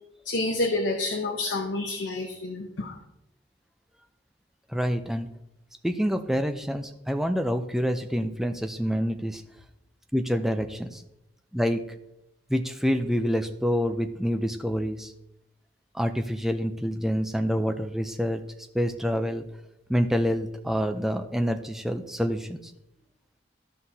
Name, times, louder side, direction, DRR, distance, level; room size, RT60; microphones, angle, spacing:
voice 1, 0.2-3.0, left 2 dB, 75° left, 3 dB, 0.9 m, -28 dB
voice 2, 4.7-5.3 5.8-9.4 10.1-11.0 11.5-11.8 12.5-15.1 15.9-18.4 18.7-19.4 19.9-22.6, equal, ahead, 7 dB, 0.5 m, -27 dB
13.0 x 5.7 x 2.8 m, 0.86 s
head